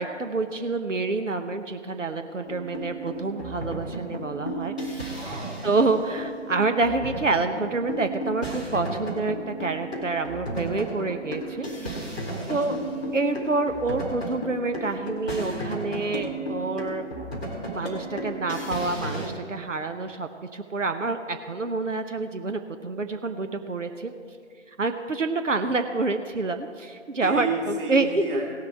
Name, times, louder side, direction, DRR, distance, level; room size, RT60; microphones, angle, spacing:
voice 1, 0.0-5.1 5.6-12.0 12.5-12.8 13.1-17.1 17.7-24.1 24.8-27.5 27.9-28.2, right 3 dB, 85° right, 7 dB, 0.9 m, -27 dB
sound 1, 2.4-19.3, right 1 dB, 5° right, 0.6 m, -34 dB
voice 2, 5.1-5.6 12.3-12.9 27.2-28.5, right 3 dB, 25° right, -4 dB, 2.4 m, -32 dB
17.5 x 6.7 x 4.6 m, 2.2 s
figure-of-eight pair, 145°, 37 cm